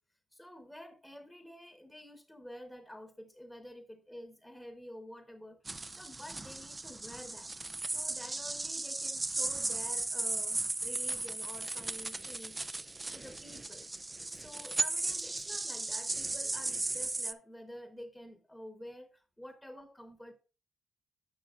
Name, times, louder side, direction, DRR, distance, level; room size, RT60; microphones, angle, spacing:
voice 1, 0.3-5.6 5.9-7.5 7.9-13.9 14.3-20.3, equal, 5° left, 1.3 m, -50 dB
sound 1, 5.7-17.3, right 2 dB, 25° right, 0.6 m, -36 dB
11.0 x 5.8 x 2.5 m
supercardioid pair, 55°, 0 cm